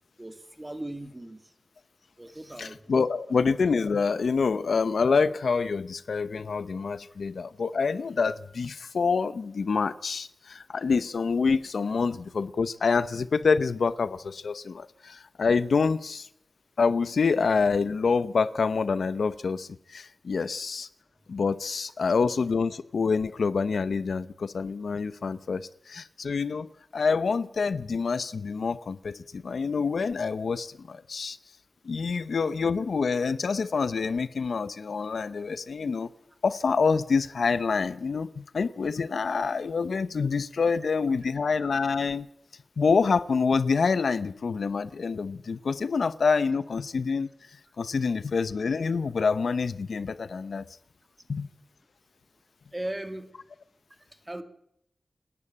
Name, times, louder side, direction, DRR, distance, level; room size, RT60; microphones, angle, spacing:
voice 1, 0.2-1.4 2.2-2.9 52.7-53.3 54.3-54.4, right 1 dB, 20° right, 2.1 m, -37 dB
voice 2, 2.6-16.3 16.8-20.9 21.3-31.4 31.8-36.1 36.4-42.3 42.8-47.3 47.8-50.7 51.3-51.5, left 5 dB, 80° left, 0.8 m, -27 dB
27.5 x 11.0 x 8.7 m
wide cardioid pair, 110°, 0 cm